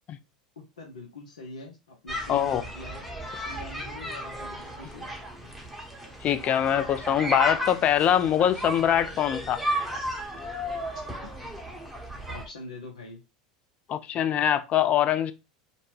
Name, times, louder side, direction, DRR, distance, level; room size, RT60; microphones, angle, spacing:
voice 1, 0.6-3.1 3.4-5.1 11.2-11.3 12.3-13.2, left 2 dB, 80° left, 0.6 m, -43 dB
sound 1, 2.1-12.5, equal, ahead, 0.8 m, -34 dB
voice 2, 2.3-2.6 6.2-9.6 13.9-15.3, left 10 dB, 35° left, 0.3 m, -23 dB
2.6 x 2.1 x 3.1 m
hypercardioid pair, 85°, 4 cm